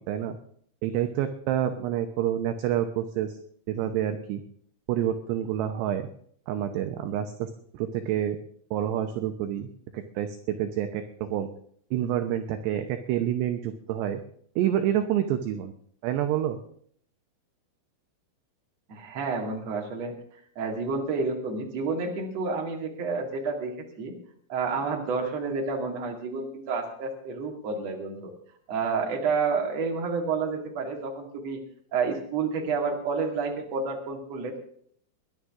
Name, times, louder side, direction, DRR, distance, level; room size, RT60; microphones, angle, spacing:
voice 1, 0.8-3.4 3.7-4.4 4.9-6.1 6.5-8.4 8.7-11.5 11.9-14.2 14.6-15.7 16.0-16.6, right 11 dB, 75° right, 7 dB, 2.6 m, -28 dB
voice 2, 18.9-20.1 20.6-24.1 24.5-28.3 28.7-31.6 31.9-34.6, right 4 dB, 45° right, 1 dB, 2.5 m, -30 dB
22.5 x 11.0 x 3.6 m, 0.62 s
omnidirectional pair, 5.7 m